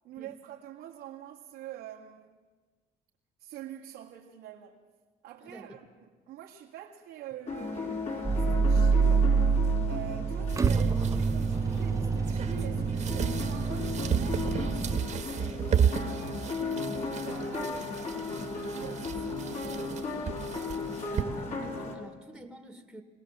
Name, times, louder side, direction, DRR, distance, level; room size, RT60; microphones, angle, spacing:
voice 1, 0.0-2.4 3.4-4.8 5.2-9.3 9.9-15.6 15.9-20.1, right 11 dB, 90° right, 2.1 m, -46 dB
voice 2, 5.4-5.8 21.1-23.0, right 1 dB, ahead, 1.9 m, -47 dB
sound 1, 7.5-22.0, left 3 dB, 40° left, 3.4 m, -36 dB
sound 2, 8.2-15.0, right 5 dB, 20° right, 0.7 m, -27 dB
sound 3, 10.5-21.2, right 7 dB, 45° right, 1.7 m, -33 dB
23.0 x 18.0 x 7.5 m
cardioid pair, 110°, 17 cm